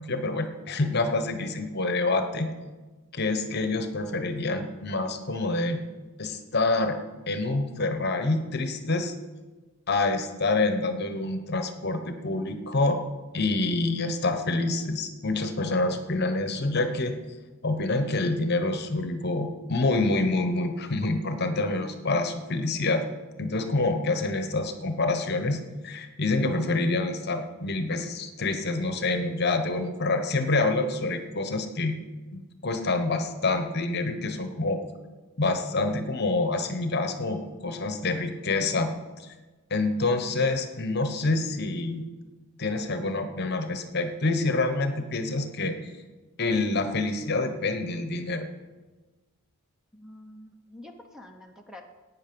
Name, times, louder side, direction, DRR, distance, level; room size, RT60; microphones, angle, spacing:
voice 1, 0.0-2.5 3.1-5.8 6.2-7.0 7.3-9.1 9.9-13.0 13.3-17.1 17.6-23.0 23.4-32.0 32.3-34.8 35.4-38.9 39.7-42.0 42.6-45.8 46.4-48.5, left 2 dB, 50° left, 7 dB, 1.1 m, -27 dB
voice 2, 49.9-51.8, left 1 dB, ahead, 3 dB, 0.9 m, -47 dB
16.0 x 9.4 x 5.4 m, 1.3 s
head